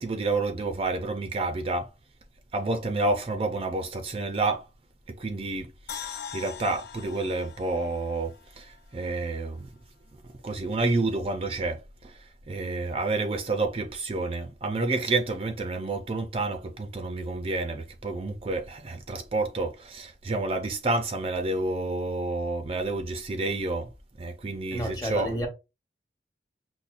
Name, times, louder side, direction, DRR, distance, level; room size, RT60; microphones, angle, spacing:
voice 1, 0.0-1.9 2.5-4.6 5.2-8.7 8.9-9.7 10.4-11.8 12.5-23.9 24.2-25.3, right 2 dB, 30° right, 0.4 m, -29 dB
sound 1, 5.9-9.1 9.4-9.5, left 9 dB, 65° left, 0.4 m, -42 dB
voice 2, 24.7-25.5, equal, 20° left, 0.9 m, -30 dB
5.6 x 2.1 x 2.5 m
head